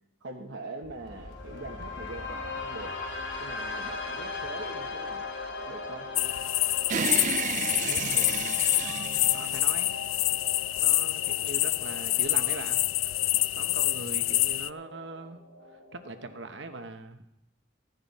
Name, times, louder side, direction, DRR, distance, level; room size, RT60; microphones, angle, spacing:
voice 1, 0.2-2.9 3.4-5.3 5.7-6.1, right 2 dB, 80° right, -1 dB, 1.3 m, -42 dB
sound 1, 0.8-16.8, left 3 dB, 70° left, 2.9 m, -40 dB
sound 2, 6.2-14.7, left 18 dB, 85° left, 0.3 m, -27 dB
sound 3, 6.9-10.4, right 8 dB, 40° right, 0.4 m, -32 dB
voice 2, 7.8-8.6 9.2-9.9 10.8-12.8 13.3-15.4 15.7-17.2, right 3 dB, 65° right, 8 dB, 1.0 m, -41 dB
15.0 x 10.5 x 4.2 m, 0.84 s
head